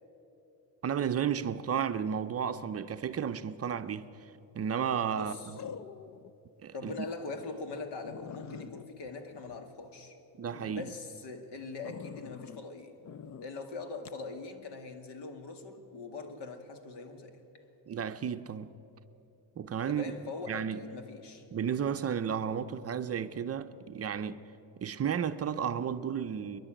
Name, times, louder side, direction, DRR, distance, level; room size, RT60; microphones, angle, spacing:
voice 1, 0.8-4.1 4.5-5.6 6.6-6.9 10.4-10.9 17.9-18.7 19.6-20.1 20.5-20.8 21.5-24.4 24.8-26.6, right 8 dB, 35° right, 0.6 m, -33 dB
sound 1, 4.0-4.4 5.6-6.3 6.8-6.9 7.4-7.5 7.7-7.8 8.0-10.1 10.5-10.9 11.8-12.6 13.0-13.5 14.0-14.2, left 7 dB, 40° left, 0.6 m, -46 dB
voice 2, 5.1-5.5 6.7-10.2 10.7-13.0 13.4-17.4 19.9-21.4, left 3 dB, 70° left, 2.3 m, -42 dB
27.0 x 11.0 x 9.0 m
cardioid pair, 125°, 43 cm